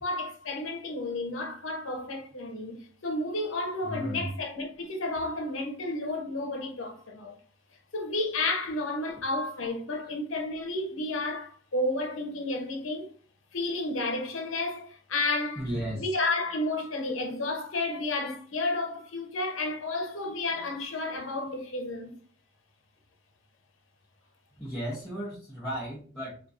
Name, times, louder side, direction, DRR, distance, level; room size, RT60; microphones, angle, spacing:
voice 1, 0.0-7.3 7.9-13.1 13.5-15.7 16.0-22.1, left 2 dB, 85° left, 0.8 m, -31 dB
voice 2, 3.8-4.3 15.6-16.1 24.6-26.4, equal, 5° left, 0.9 m, -35 dB
4.5 x 2.5 x 2.5 m
head